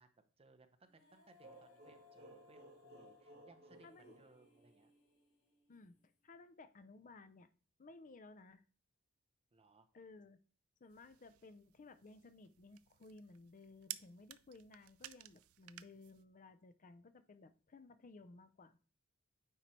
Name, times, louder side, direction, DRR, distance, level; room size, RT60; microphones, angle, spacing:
voice 1, 0.0-4.9 9.5-9.9, right 3 dB, 30° right, 7 dB, 0.7 m, -66 dB
Female singing, 0.8-6.0, left 7 dB, 90° left, 1.6 m, -67 dB
sound 1, 1.4-5.1, right 2 dB, 50° right, 1.7 m, -60 dB
voice 2, 6.2-7.5 7.8-8.6 9.9-10.4 10.8-18.8, left 3 dB, 40° left, 12 dB, 0.5 m, -58 dB
sound 2, 10.9-16.2, right 15 dB, 80° right, 0.4 m, -54 dB
9.2 x 3.2 x 4.3 m, 0.39 s
head